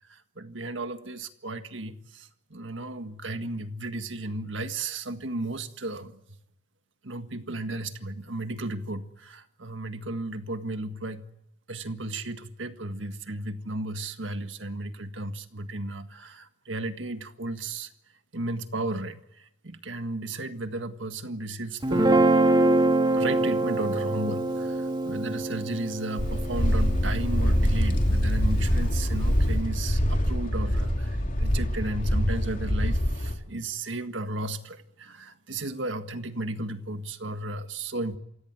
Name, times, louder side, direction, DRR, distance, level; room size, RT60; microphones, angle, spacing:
voice 1, 0.4-6.1 7.0-11.3 11.7-17.9 18.3-19.2 19.6-22.2 23.2-38.2, right 2 dB, 75° right, 1.7 m, -34 dB
Guitar, 21.8-28.2, right 2 dB, 25° right, 2.1 m, -25 dB
sound 1, 26.2-33.3, equal, 45° left, 3.3 m, -24 dB
28.0 x 17.0 x 9.6 m
head